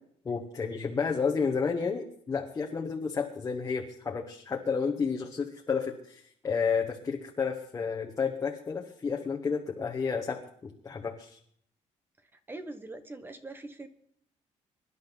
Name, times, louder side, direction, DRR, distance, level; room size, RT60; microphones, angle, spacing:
voice 1, 0.2-11.4, left 5 dB, 25° left, 1 dB, 1.3 m, -31 dB
voice 2, 12.3-13.9, right 2 dB, 15° right, 9 dB, 1.2 m, -42 dB
24.0 x 11.0 x 4.1 m, 0.66 s
cardioid pair, 150°, 13 cm